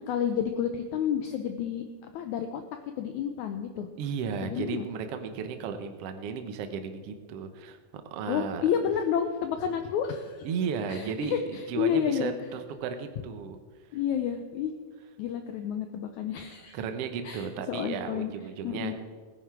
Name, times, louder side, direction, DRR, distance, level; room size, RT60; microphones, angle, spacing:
voice 1, 0.0-1.8 2.1-2.6 3.0-3.9 4.4-4.9 8.3-10.5 10.9-12.3 13.9-14.7 15.2-16.8 17.2-18.3 18.6-18.9, left 8 dB, 85° left, 7 dB, 1.7 m, -30 dB
voice 2, 4.0-8.6 10.4-13.6 16.7-18.9, right 6 dB, 85° right, 7 dB, 1.3 m, -34 dB
17.5 x 10.0 x 4.7 m, 1.5 s
omnidirectional pair, 4.1 m